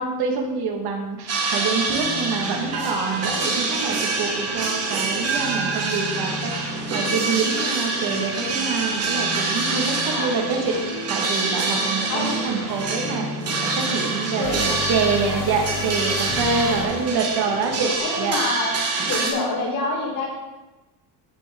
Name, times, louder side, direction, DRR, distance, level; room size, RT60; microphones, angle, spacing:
voice 1, 0.0-10.8 11.1-18.4, right 4 dB, 55° right, 2 dB, 1.7 m, -26 dB
sound 1, 1.3-19.3, right 3 dB, 30° right, 1.8 m, -26 dB
sound 2, 1.9-16.8, left 3 dB, 70° left, 1.9 m, -34 dB
sound 3, 12.7-12.8 14.0-14.1 15.3-15.4 16.6-16.8 17.9-18.0, right 1 dB, 5° left, 1.0 m, -40 dB
voice 2, 14.3-14.8 18.0-18.7 19.0-20.3, left 2 dB, 45° left, -5 dB, 3.9 m, -27 dB
15.0 x 6.2 x 3.7 m, 1.1 s
cardioid pair, 160°, 46 cm